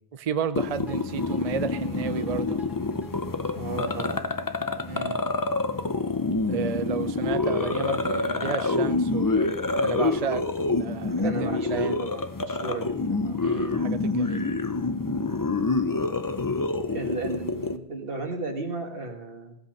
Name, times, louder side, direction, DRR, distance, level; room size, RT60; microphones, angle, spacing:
voice 1, 0.1-2.6 4.9-5.2 6.5-12.0 13.4-14.5, right 7 dB, 45° right, 12 dB, 0.5 m, -32 dB
sound 1, 0.5-17.8, left 3 dB, 25° left, 0.6 m, -27 dB
sound 2, 0.9-6.0, right 1 dB, ahead, 1.6 m, -47 dB
voice 2, 3.5-4.2 11.2-13.4 16.9-19.6, right 3 dB, 60° right, 4 dB, 2.0 m, -35 dB
16.0 x 8.4 x 6.5 m, 0.76 s
omnidirectional pair, 1.1 m